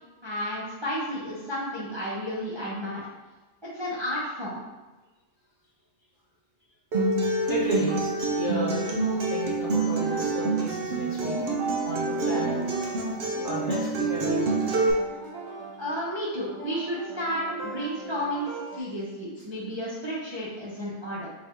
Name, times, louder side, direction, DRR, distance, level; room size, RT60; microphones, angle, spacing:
voice 1, 0.2-3.0 3.6-4.6 15.8-21.3, equal, 30° right, -8 dB, 0.6 m, -32 dB
Acoustic guitar, 6.9-14.9, right 3 dB, 60° right, 0.8 m, -27 dB
voice 2, 7.5-11.4 11.8-12.7 13.4-14.6 18.7-18.8, equal, 45° left, -6 dB, 1.0 m, -33 dB
sound 1, 7.7-9.5 9.8-18.8, right 4 dB, 85° right, 1.2 m, -38 dB
4.1 x 2.6 x 3.6 m, 1.1 s
omnidirectional pair, 1.3 m